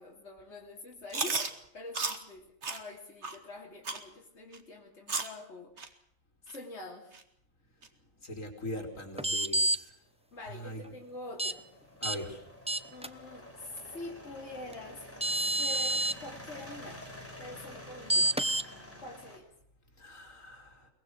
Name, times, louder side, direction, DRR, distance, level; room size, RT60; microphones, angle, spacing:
voice 1, 0.0-1.5 1.7-6.0 6.5-7.2 10.3-11.7 12.9-15.0 15.3-17.0 17.4-18.4 19.0-19.5, left 2 dB, 55° left, -1 dB, 3.4 m, -45 dB
Chewing mastication, 1.1-1.5 1.9-2.2 2.6-2.8 3.2-3.4 3.8-4.0 4.5-4.6 5.1-5.3 5.8-5.9 6.5-6.6 7.1-7.2 7.8-7.9, right 4 dB, 55° right, 2.2 m, -33 dB
voice 2, 8.2-9.9 10.5-10.9 12.0-12.4 20.0-20.9, left 1 dB, 75° left, 4 dB, 4.3 m, -41 dB
sound 1, 9.2-9.8 11.4-11.5 12.0-12.2 12.7-13.1 14.7-14.8 15.2-16.1 18.1-18.6, right 1 dB, 5° right, 0.6 m, -28 dB
sound 2, 10.3-19.4, left 1 dB, 10° left, 5.1 m, -49 dB
23.0 x 20.5 x 6.5 m, 0.72 s
omnidirectional pair, 1.4 m